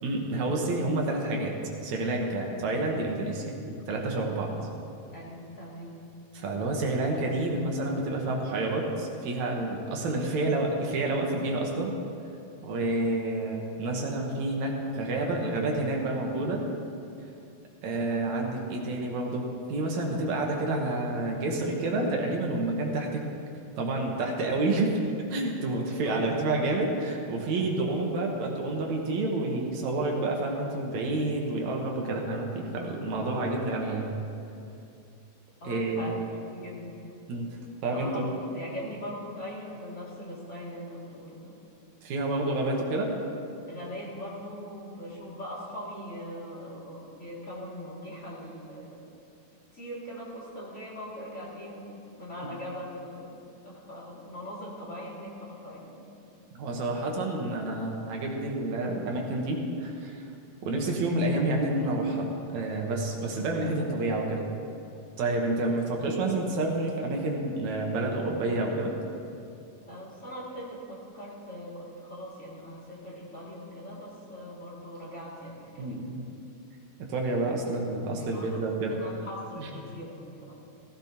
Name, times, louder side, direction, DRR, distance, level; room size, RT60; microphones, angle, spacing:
voice 1, 0.0-1.5 1.8-4.5 6.3-11.9 12.6-16.6 17.8-23.2 23.8-24.9 25.3-34.1 35.6-36.1 37.3-37.5 37.8-38.2 42.0-43.1 52.4-52.5 56.5-60.2 60.6-64.4 65.2-69.0 75.8-76.2 77.1-79.0 79.6-79.7, right 2 dB, 70° right, 0 dB, 2.5 m, -29 dB
voice 2, 5.1-6.0 26.0-26.3 35.6-37.0 37.9-41.5 43.7-49.0 49.7-53.4 53.6-56.0 69.9-76.0 78.3-78.6 78.9-80.5, equal, 25° left, -7 dB, 2.5 m, -41 dB
15.5 x 15.5 x 2.9 m, 2.6 s
omnidirectional pair, 3.6 m